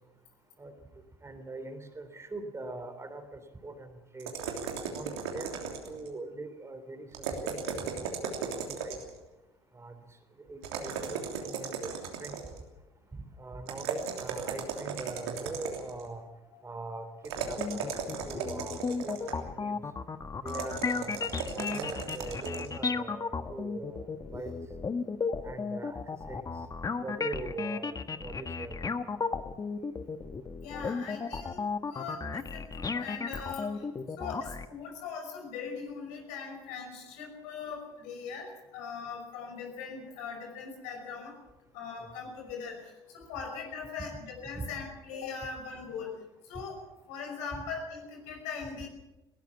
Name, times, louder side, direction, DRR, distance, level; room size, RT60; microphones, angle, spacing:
voice 1, 1.2-4.3 4.9-9.0 9.7-10.0 10.5-12.4 13.1-16.2 16.6-19.8 20.4-21.2 21.5-24.6 25.4-26.0 26.3-26.4 27.0-29.1 44.5-44.7 47.5-47.6, right 2 dB, 20° right, 8 dB, 3.3 m, -42 dB
sound 1, 4.2-6.1 7.1-9.2 10.6-12.6 13.7-16.0 17.2-19.5 20.5-22.7, right 6 dB, 75° right, 3.2 m, -36 dB
sound 2, 17.4-34.7, left 4 dB, 25° left, 1.4 m, -34 dB
voice 2, 30.6-31.6 31.9-33.9 34.2-41.4 41.7-46.1 46.5-48.9, left 5 dB, 65° left, 3 dB, 5.7 m, -40 dB
20.0 x 18.0 x 7.3 m, 1.0 s
hypercardioid pair, 60°, 14 cm